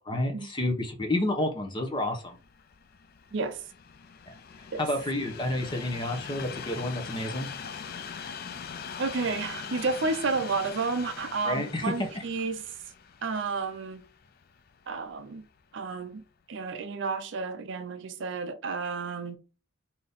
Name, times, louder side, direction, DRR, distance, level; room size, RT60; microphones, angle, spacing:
voice 1, 0.1-2.4 4.8-7.5 11.4-11.9, left 1 dB, 25° left, 0.8 m, -30 dB
Train, 2.1-15.3 16.0-16.1, left 6 dB, 45° left, 0.4 m, -42 dB
voice 2, 3.3-3.6 4.7-4.8 9.0-12.6 13.2-14.0 14.9-15.4 15.7-16.2 16.5-19.4, right 4 dB, 60° right, 0.5 m, -31 dB
3.9 x 2.8 x 3.5 m
head